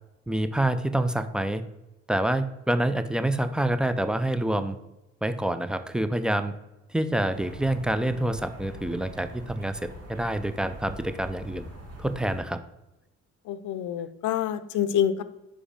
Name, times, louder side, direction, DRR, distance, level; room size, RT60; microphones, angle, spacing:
voice 1, 0.3-1.6 2.1-4.8 5.2-6.5 6.9-11.7 12.0-12.6, right 1 dB, 5° right, 11 dB, 0.4 m, -27 dB
sound 1, 7.3-12.4, right 1 dB, 55° right, 1.5 m, -42 dB
voice 2, 13.5-15.2, left 9 dB, 80° left, 12 dB, 0.6 m, -27 dB
5.1 x 5.0 x 4.9 m, 0.97 s
cardioid pair, 90°, 30 cm